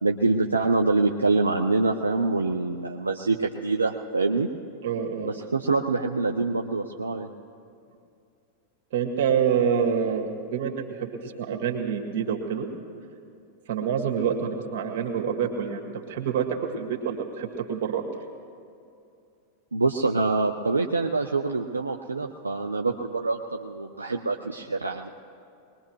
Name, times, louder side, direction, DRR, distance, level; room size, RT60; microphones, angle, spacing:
voice 1, 0.0-4.5 5.2-7.3 19.7-25.1, right 3 dB, 80° right, 2 dB, 0.5 m, -25 dB
voice 2, 4.8-5.3 8.9-12.7 13.7-18.0, right 7 dB, 50° right, 2 dB, 1.9 m, -27 dB
22.0 x 20.5 x 3.1 m, 2.5 s
figure-of-eight pair, 90°, 0 cm